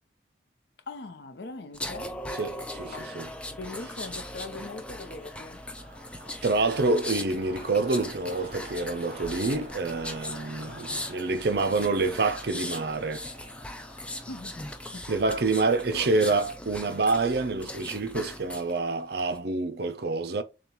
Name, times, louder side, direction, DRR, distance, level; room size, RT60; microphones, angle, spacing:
voice 1, 0.9-2.1 2.9-3.1 3.6-5.6 14.3-14.7 14.9-15.1 15.9-16.4, left 3 dB, 65° left, 0.7 m, -41 dB
sound 1, 1.4-18.0, right 1 dB, 35° right, 1.9 m, -50 dB
sound 2, 1.7-18.7 19.1-19.4, left 1 dB, 5° left, 0.4 m, -39 dB
voice 2, 2.4-3.3 6.4-13.2 15.1-20.4, right 3 dB, 55° right, 0.6 m, -27 dB
6.8 x 2.3 x 3.0 m
head